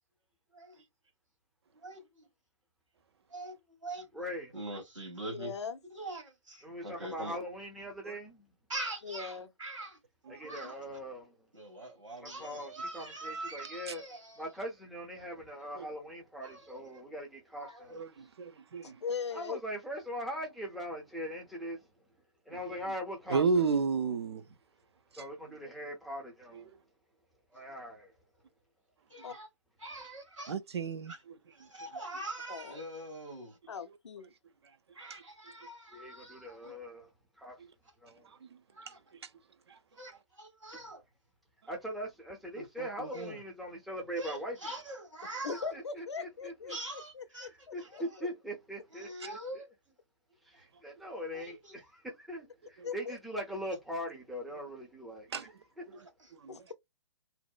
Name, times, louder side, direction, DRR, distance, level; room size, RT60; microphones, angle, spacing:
voice 1, 0.5-0.8 1.8-2.3 3.3-4.1 4.5-5.5 5.9-7.4 8.7-10.0 10.4-10.8 11.5-14.7 16.4-16.9 17.5-18.0 29.1-29.5 29.8-30.6 31.1-31.2 31.5-33.6 34.9-36.8 38.7-39.0 39.9-41.0 42.5-43.4 44.2-45.7 46.7-47.5 47.8-48.2 48.9-49.7 51.3-51.7 55.9-56.3, right 2 dB, 85° right, 1.3 m, -43 dB
voice 2, 4.1-4.5 6.6-8.4 10.3-11.3 12.2-14.0 14.4-18.0 19.3-21.8 22.5-23.7 25.2-26.7 27.5-28.1 35.9-37.1 37.4-37.6 38.0-38.2 41.7-44.6 45.7-46.8 47.7-49.4 50.5-55.3, equal, ahead, 0.4 m, -41 dB
voice 3, 5.4-5.8 9.0-9.5 18.8-19.6 29.2-29.3 32.5-32.8 33.7-34.3 45.4-48.3 52.8-53.2 56.5-56.7, left 6 dB, 65° left, 0.5 m, -40 dB
voice 4, 17.9-19.0 22.6-22.7 23.3-24.4 25.1-25.3 30.5-31.1 35.1-35.2 39.7-39.8 52.8-52.9 55.3-55.5 56.3-56.6, right 5 dB, 60° right, 0.4 m, -32 dB
2.7 x 2.1 x 2.2 m
figure-of-eight pair, 130°, 15 cm